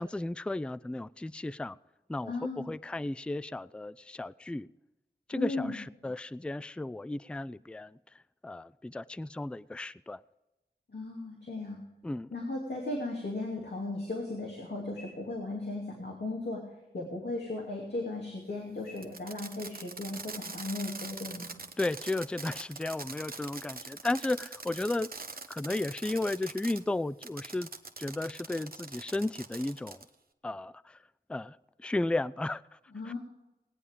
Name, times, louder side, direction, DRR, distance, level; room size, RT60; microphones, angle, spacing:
voice 1, 0.0-1.8 2.1-4.7 5.3-10.2 12.0-12.3 21.8-25.1 25.5-27.7 28.0-30.1 30.4-31.0 31.3-32.8 33.1-33.2, left 2 dB, 5° left, 0.3 m, -34 dB
voice 2, 2.2-2.7 5.3-5.8 10.9-11.8 12.3-21.6 32.9-33.2, left 2 dB, 70° left, 2.6 m, -36 dB
Fireworks, 19.0-26.8 27.2-30.1, right 3 dB, 55° right, 1.0 m, -43 dB
19.0 x 9.8 x 3.6 m
wide cardioid pair, 65°, 18 cm